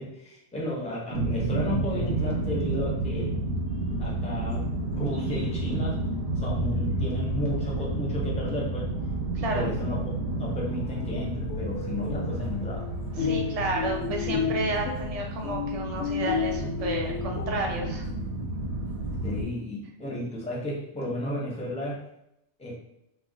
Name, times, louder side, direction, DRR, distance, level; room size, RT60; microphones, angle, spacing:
voice 1, 0.0-3.4 4.0-4.7 5.0-6.0 6.4-8.9 9.3-12.9 19.2-22.0 22.6-22.7, left 1 dB, 10° left, -4 dB, 0.5 m, -33 dB
sound 1, 1.1-19.4, right 2 dB, 75° right, 0.8 m, -31 dB
voice 2, 9.3-9.7 13.2-18.1, right 2 dB, 50° right, 0 dB, 0.5 m, -31 dB
sound 2, 10.8-18.4, left 6 dB, 80° left, 0.9 m, -33 dB
2.4 x 2.1 x 3.7 m, 0.78 s
omnidirectional pair, 1.2 m